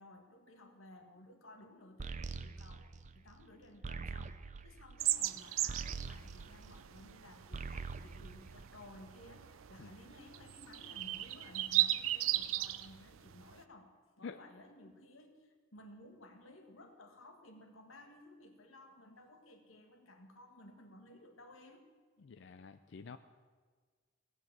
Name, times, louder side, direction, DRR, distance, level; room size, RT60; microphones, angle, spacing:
voice 1, 0.0-21.8 22.2-22.3, left 1 dB, 85° left, 5 dB, 1.8 m, -57 dB
sound 1, 2.0-7.2 7.4-9.2, right 4 dB, 35° right, 0.5 m, -45 dB
sound 2, 5.0-13.6, right 14 dB, 85° right, 0.5 m, -37 dB
voice 2, 22.2-23.2, left 5 dB, 60° left, 10 dB, 0.5 m, -48 dB
16.5 x 8.0 x 7.5 m, 1.5 s
head